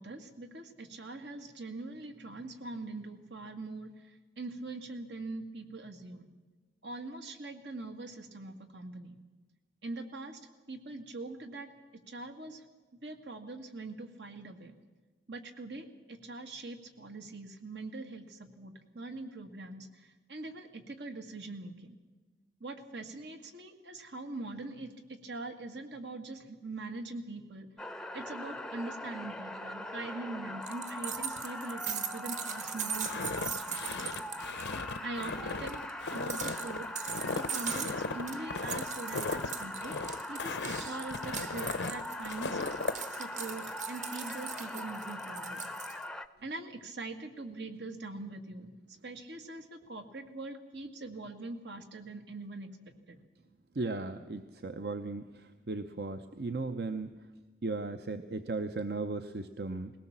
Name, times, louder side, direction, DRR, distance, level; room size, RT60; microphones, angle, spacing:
voice 1, 0.0-6.3 6.8-9.2 9.8-10.4 10.7-11.7 12.1-12.6 13.0-14.8 15.3-22.0 22.6-27.7 28.1-34.1 35.0-35.8 36.1-36.9 37.3-40.0 40.3-42.6 43.1-45.7 46.4-48.8 49.0-52.7 53.1-53.2, right 2 dB, 80° right, 6 dB, 2.0 m, -43 dB
sound 1, 27.8-46.3, left 1 dB, 5° left, 0.6 m, -41 dB
sound 2, 30.6-34.6 34.9-35.0 35.2-46.0, right 7 dB, 40° right, 1.1 m, -40 dB
Walk footsteps, 33.0-43.0, left 4 dB, 85° left, 0.7 m, -37 dB
voice 2, 53.7-57.1 57.6-59.9, right 3 dB, 65° right, 9 dB, 0.7 m, -36 dB
20.5 x 18.0 x 7.4 m, 1.3 s
head